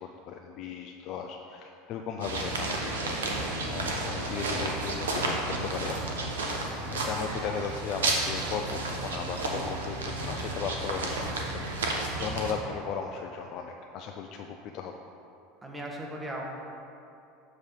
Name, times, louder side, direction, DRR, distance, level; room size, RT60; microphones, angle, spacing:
voice 1, 0.0-3.2 3.7-6.0 6.8-14.9, left 6 dB, 50° left, 3 dB, 0.3 m, -36 dB
sound 1, 2.2-12.5, right 2 dB, 80° right, 0.7 m, -32 dB
voice 2, 15.6-16.4, right 1 dB, 15° right, -1 dB, 1.1 m, -37 dB
6.8 x 3.3 x 5.8 m, 2.7 s
hypercardioid pair, 75°, 0 cm